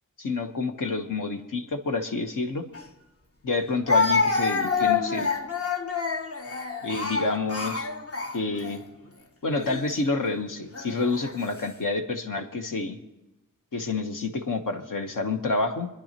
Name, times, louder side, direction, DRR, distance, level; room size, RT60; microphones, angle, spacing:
voice 1, 0.2-2.6 3.4-5.3 6.8-7.9 8.3-8.8 9.4-13.0 13.7-15.9, left 3 dB, 70° left, 5 dB, 1.3 m, -28 dB
Speech, 2.7-2.8 3.9-8.8 9.5-9.8 10.7-11.3, left 4 dB, 45° left, 1.2 m, -27 dB
27.5 x 10.5 x 3.0 m, 1.0 s
cardioid pair, 55°, 33 cm